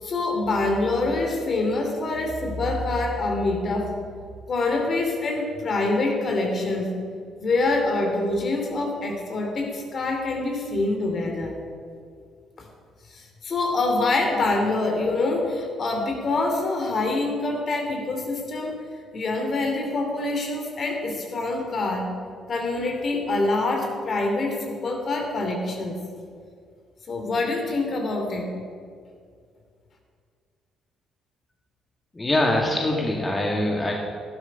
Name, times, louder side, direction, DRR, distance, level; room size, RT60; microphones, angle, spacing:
voice 1, 0.0-3.9 4.5-6.9 7.4-11.6 12.6-12.7 13.1-18.8 19.1-22.1 22.5-26.0 27.1-28.5, left 2 dB, 50° left, 2 dB, 2.9 m, -25 dB
voice 2, 32.1-33.9, left 1 dB, 20° left, 0 dB, 2.0 m, -23 dB
12.5 x 11.5 x 5.6 m, 2.2 s
hypercardioid pair, 50°, 0 cm